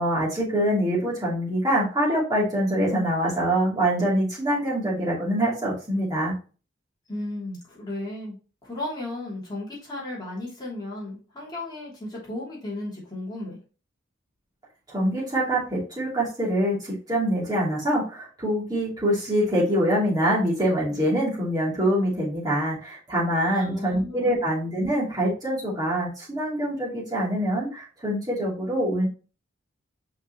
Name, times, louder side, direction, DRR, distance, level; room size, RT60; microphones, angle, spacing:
voice 1, 0.0-6.3 14.9-29.1, right 1 dB, 20° right, -7 dB, 3.1 m, -24 dB
voice 2, 7.1-8.4 8.6-13.6 23.5-24.4, left 1 dB, 20° left, -6 dB, 3.0 m, -34 dB
5.8 x 5.4 x 3.1 m, 0.35 s
head